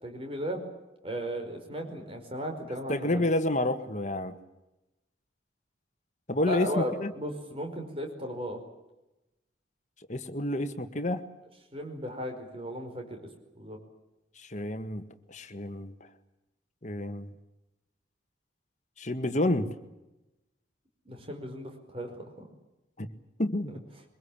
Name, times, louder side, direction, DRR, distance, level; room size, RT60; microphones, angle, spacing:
voice 1, 0.0-0.6 1.0-3.2 6.4-8.6 11.7-13.2 13.6-13.8 21.1-22.5 23.7-23.8, equal, 30° right, 4 dB, 5.0 m, -36 dB
voice 2, 2.9-4.4 6.3-7.1 10.1-11.2 14.4-15.9 16.8-17.3 19.0-19.7 23.0-23.1 23.4-23.7, left 1 dB, 40° left, 8 dB, 1.7 m, -29 dB
23.5 x 22.0 x 8.7 m, 0.97 s
head